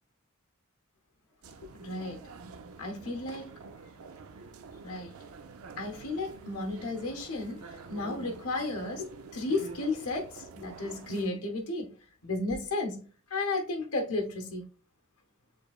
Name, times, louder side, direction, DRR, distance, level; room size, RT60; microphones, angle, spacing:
sound 1, 1.4-11.3, right 4 dB, 75° right, 0.5 m, -48 dB
voice 1, 1.6-2.2 2.8-3.5 4.8-5.1 5.8-11.9 12.2-13.0 13.3-14.6, left 2 dB, 90° left, 0.9 m, -33 dB
6.7 x 3.3 x 2.3 m
head